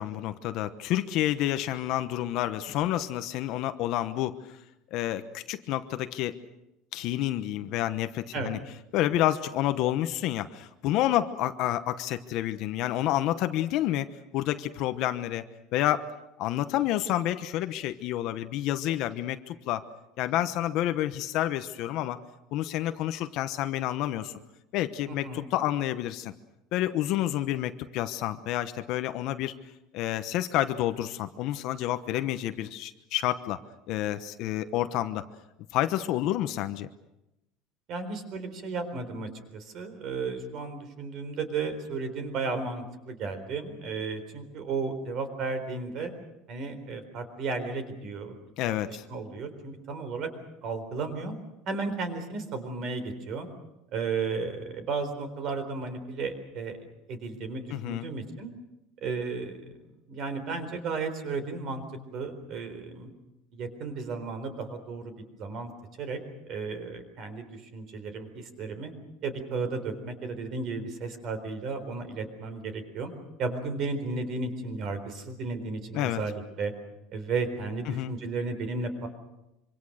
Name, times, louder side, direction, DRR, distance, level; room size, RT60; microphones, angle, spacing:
voice 1, 0.0-4.6 4.9-6.4 6.9-8.6 8.9-14.1 14.3-15.4 15.7-16.1 16.4-19.8 20.2-22.2 22.5-24.3 24.7-26.3 26.7-29.5 29.9-33.6 33.9-35.2 35.7-36.9 48.6-49.0 57.7-58.1 75.9-76.2 77.9-78.1, left 13 dB, 45° left, 10 dB, 1.0 m, -29 dB
voice 2, 25.1-25.5 37.9-46.1 46.5-48.4 48.6-50.3 50.6-51.4 51.7-53.5 53.9-56.8 57.1-58.5 59.0-61.8 62.1-63.1 63.5-65.7 66.0-66.2 66.5-68.9 69.2-73.1 73.4-76.7 77.1-79.1, right 4 dB, 35° right, 9 dB, 4.0 m, -34 dB
26.0 x 25.0 x 6.5 m, 0.91 s
cardioid pair, 175°, 0 cm